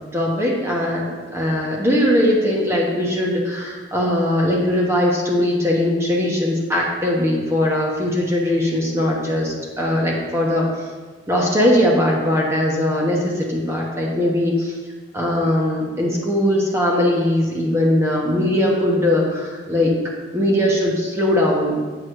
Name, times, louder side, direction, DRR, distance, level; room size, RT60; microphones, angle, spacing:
voice 1, 0.1-10.7 11.3-14.7 15.1-19.9 20.3-21.8, left 1 dB, 15° right, -3 dB, 1.0 m, -20 dB
8.1 x 3.2 x 6.2 m, 1.4 s
head